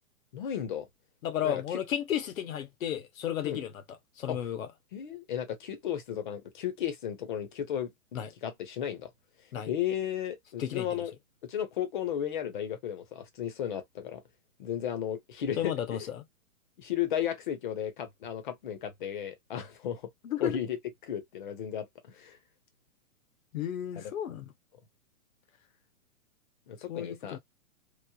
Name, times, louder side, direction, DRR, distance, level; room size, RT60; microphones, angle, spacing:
voice 1, 0.3-0.9 1.4-1.8 3.4-3.6 4.3-4.4 4.9-7.9 8.4-9.1 9.6-11.1 11.4-14.2 14.6-15.7 16.8-20.0 20.4-20.8 21.1-22.4 24.0-24.1 26.7-27.4, left 10 dB, 35° left, 0.7 m, -34 dB
voice 2, 1.2-4.7 8.1-8.3 9.5-9.7 10.6-11.0 15.6-16.2 20.2-20.6 23.5-24.5 26.9-27.4, left 10 dB, 70° left, 0.8 m, -33 dB
3.1 x 2.0 x 2.2 m
hypercardioid pair, 155°, 43 cm